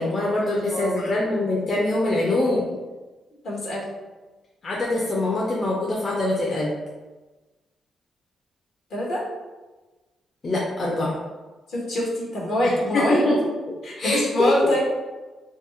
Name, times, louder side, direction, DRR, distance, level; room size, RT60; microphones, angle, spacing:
voice 1, 0.0-2.7 4.6-6.7 10.4-11.2 12.9-13.4 13.7-14.5, left 2 dB, 50° left, -4 dB, 0.6 m, -24 dB
voice 2, 0.5-1.2 3.4-3.9 8.9-9.2 11.7-13.3 13.8-14.8, left 1 dB, 75° left, -4 dB, 1.1 m, -25 dB
2.5 x 2.0 x 3.8 m, 1.2 s
supercardioid pair, 50°, 0 cm